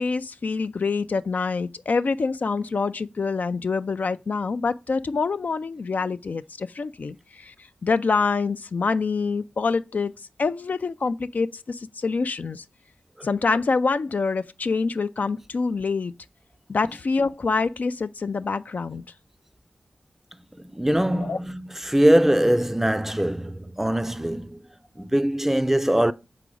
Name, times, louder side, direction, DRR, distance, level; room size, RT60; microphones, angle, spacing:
voice 1, 0.0-7.5 7.8-10.1 10.4-12.6 13.2-16.1 16.7-19.0 21.2-21.4, left 4 dB, 60° left, 0.3 m, -26 dB
voice 2, 20.6-24.6 25.0-26.1, right 1 dB, 10° right, 0.4 m, -22 dB
5.0 x 3.8 x 4.9 m
cardioid pair, 40°, 3 cm